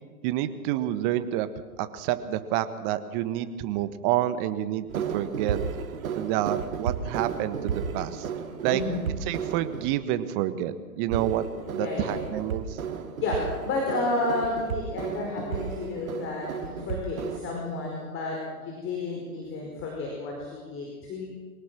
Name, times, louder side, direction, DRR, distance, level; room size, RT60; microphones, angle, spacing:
voice 1, 0.2-1.5 1.8-5.6 6.1-8.3 8.6-8.8 9.3-12.8, right 12 dB, 35° right, 11 dB, 1.4 m, -28 dB
sound 1, 4.9-9.9 11.1-17.4, right 7 dB, 65° right, 2.3 m, -33 dB
voice 2, 8.7-9.0 11.7-12.2 13.2-21.3, left 2 dB, 25° left, -1 dB, 5.1 m, -31 dB
24.0 x 18.0 x 6.2 m, 1.4 s
hypercardioid pair, 120°, 45 cm